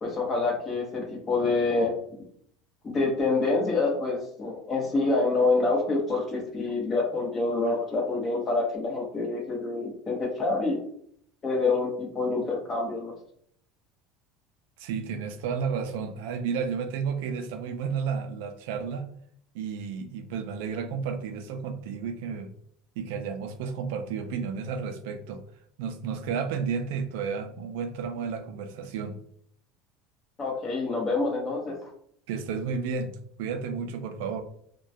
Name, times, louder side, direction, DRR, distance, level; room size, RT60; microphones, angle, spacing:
voice 1, 0.0-2.0 2.8-10.8 11.4-13.1 30.4-31.9, left 3 dB, 25° left, -1 dB, 0.8 m, -27 dB
voice 2, 14.8-19.1 19.5-22.5 23.0-25.4 25.8-29.2 32.3-34.4, right 6 dB, 80° right, 8 dB, 0.3 m, -32 dB
2.2 x 2.1 x 2.6 m, 0.64 s
cardioid pair, 155°, 0 cm